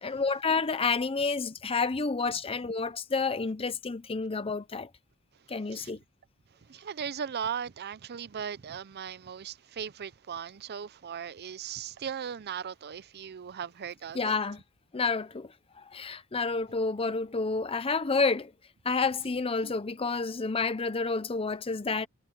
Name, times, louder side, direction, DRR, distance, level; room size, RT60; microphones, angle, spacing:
voice 1, 0.0-4.9 5.5-6.0 14.1-14.6 14.9-15.5 15.8-18.5 18.8-22.1, left 4 dB, 25° left, 0.6 m, -29 dB
voice 2, 6.7-14.4 19.6-19.7, right 7 dB, 50° right, 0.5 m, -38 dB
head